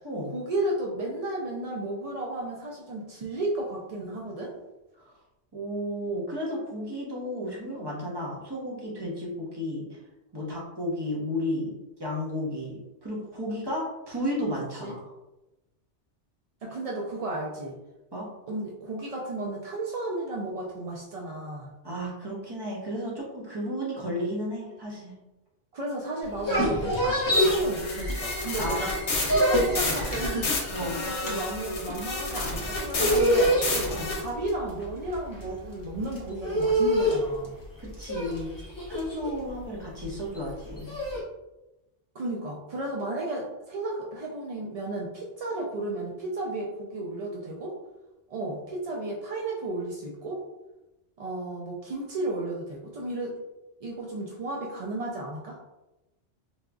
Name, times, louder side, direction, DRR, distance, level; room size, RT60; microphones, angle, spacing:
voice 1, 0.3-4.5 14.8-15.0 16.6-17.7 18.5-21.7 25.7-29.0 29.3-37.6 42.1-47.7 48.3-50.4 51.2-53.4 53.8-55.8, right 2 dB, 65° right, -1 dB, 0.3 m, -33 dB
voice 2, 5.5-10.0 10.3-15.1 16.8-16.9 18.1-18.3 21.8-25.1 28.6-29.0 30.7-31.0 33.9-34.1 37.8-38.5 38.9-41.0, equal, 25° right, -4 dB, 0.8 m, -33 dB
sound 1, 26.2-28.6 28.9-41.2, equal, 20° left, 0.6 m, -27 dB
sound 2, 27.3-34.2, left 2 dB, 75° left, 1.0 m, -31 dB
sound 3, 27.6-34.1, equal, 50° left, 1.1 m, -44 dB
4.0 x 2.4 x 2.3 m, 1.0 s
omnidirectional pair, 1.2 m